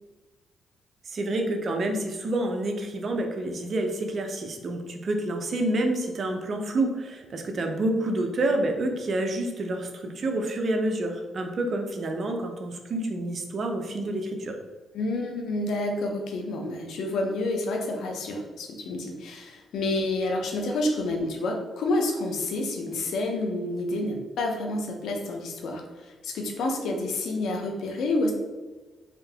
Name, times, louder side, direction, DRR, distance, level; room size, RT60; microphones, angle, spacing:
voice 1, 1.1-14.5, right 1 dB, 50° right, 3 dB, 0.6 m, -28 dB
voice 2, 14.9-28.3, left 2 dB, 80° left, 2 dB, 0.7 m, -29 dB
3.7 x 2.7 x 3.5 m, 1.3 s
cardioid pair, 95°, 0 cm